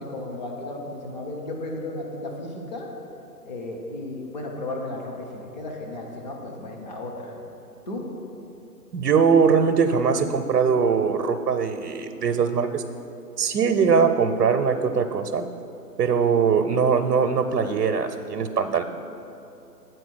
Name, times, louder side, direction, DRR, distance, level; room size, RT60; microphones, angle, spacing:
voice 1, 0.0-2.9 3.4-7.3 7.9-8.0, left 2 dB, 25° left, 0 dB, 0.8 m, -34 dB
voice 2, 8.9-12.8 13.4-15.5 16.0-18.8, right 6 dB, 85° right, 6 dB, 0.7 m, -21 dB
8.1 x 4.6 x 6.2 m, 2.8 s
hypercardioid pair, 150°, 49 cm